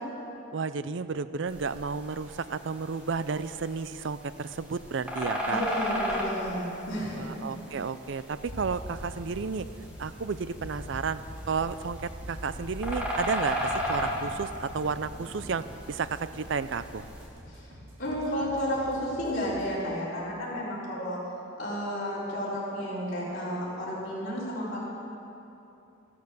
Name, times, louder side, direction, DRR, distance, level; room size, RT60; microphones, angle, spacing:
voice 1, 0.5-5.6 7.1-9.7 10.0-11.2 11.5-17.0, right 5 dB, 60° right, 13 dB, 0.5 m, -32 dB
sound 1, 1.5-17.3, equal, 5° right, 2.1 m, -36 dB
voice 2, 5.4-7.3 17.5-17.7 18.0-21.2 21.6-24.8, equal, 45° left, -9 dB, 4.4 m, -32 dB
sound 2, 8.5-15.8, equal, 70° left, 3.0 m, -43 dB
sound 3, 8.8-19.8, equal, 80° right, 2.6 m, -49 dB
14.0 x 13.0 x 6.9 m, 2.8 s
head